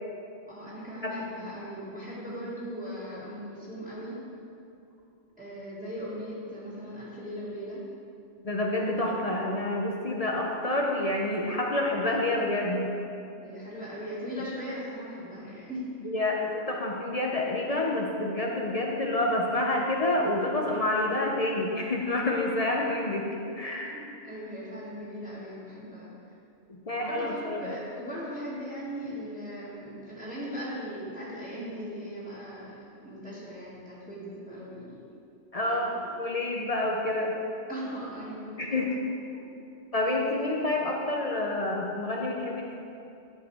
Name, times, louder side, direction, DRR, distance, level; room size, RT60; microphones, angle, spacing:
voice 1, 0.5-4.2 5.4-7.8 13.4-15.9 23.9-26.1 27.0-32.7 33.0-35.0 35.8-36.1 37.7-38.8 39.4-39.5, equal, 5° right, -10 dB, 2.0 m, -39 dB
voice 2, 8.4-12.9 16.0-24.0 26.7-27.8 35.5-37.3 38.6-39.0 39.9-42.7, left 2 dB, 40° left, -1 dB, 0.7 m, -28 dB
11.0 x 4.6 x 4.8 m, 2.7 s
omnidirectional pair, 1.2 m